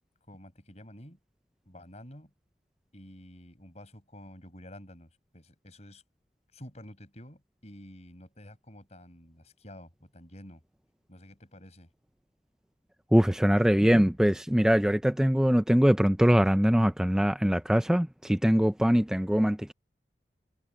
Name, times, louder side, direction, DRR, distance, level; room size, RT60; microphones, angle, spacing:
voice 1, 0.3-1.2 1.6-2.3 2.9-6.0 6.5-10.6 11.1-11.9, left 1 dB, 40° left, 6.5 m, -49 dB
voice 2, 13.1-19.7, equal, 5° right, 0.4 m, -23 dB
head